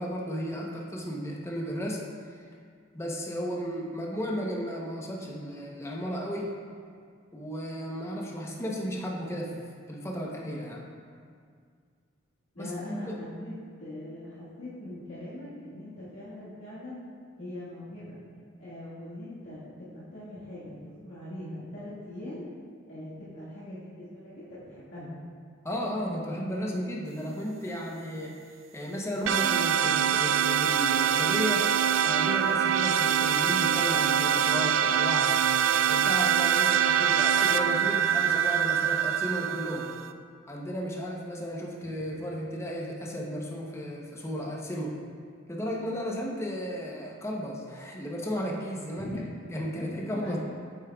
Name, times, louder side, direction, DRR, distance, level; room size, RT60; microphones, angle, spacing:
voice 1, 0.0-2.0 2.3-2.4 2.9-6.6 7.3-9.6 9.9-10.8 12.6-13.1 25.6-28.3 28.7-31.7 32.0-35.4 35.9-39.9 40.5-45.0 45.5-49.1 49.5-50.4, equal, 15° left, -2 dB, 0.7 m, -34 dB
voice 2, 12.5-17.0 17.4-18.2 18.6-22.5 22.9-25.1 49.0-49.3 49.8-50.4, left 1 dB, 70° left, -11 dB, 1.7 m, -41 dB
sound 1, 29.3-40.1, right 8 dB, 70° right, 0.3 m, -24 dB
8.2 x 7.3 x 2.3 m, 2.1 s
head